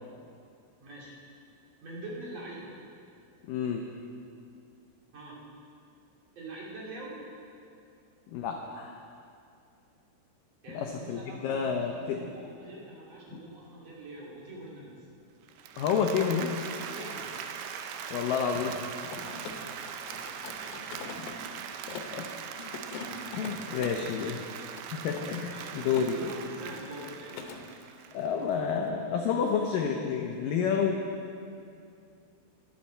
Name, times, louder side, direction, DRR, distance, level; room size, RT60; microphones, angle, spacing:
voice 1, 0.8-1.1 1.8-2.7 5.1-5.4 6.3-7.2 10.6-14.9 16.9-17.4 19.0-21.0 21.9-22.2 23.8-24.3 25.5-27.7, right 1 dB, 45° right, -5 dB, 3.1 m, -45 dB
voice 2, 3.5-3.8 8.3-9.0 10.7-12.2 15.8-16.7 18.1-18.7 21.9-22.3 22.6-22.8 23.4-24.4 24.9-26.3 28.1-31.0, left 6 dB, 90° left, 2 dB, 1.9 m, -29 dB
Applause, 15.5-28.5, right 7 dB, 80° right, 2.5 m, -41 dB
Mechanisms, 18.2-22.2 22.6-24.1 24.7-26.1 26.4-26.8 27.0-27.6, left 5 dB, 70° left, 2.4 m, -43 dB
21.0 x 8.3 x 4.4 m, 2.5 s
omnidirectional pair, 4.9 m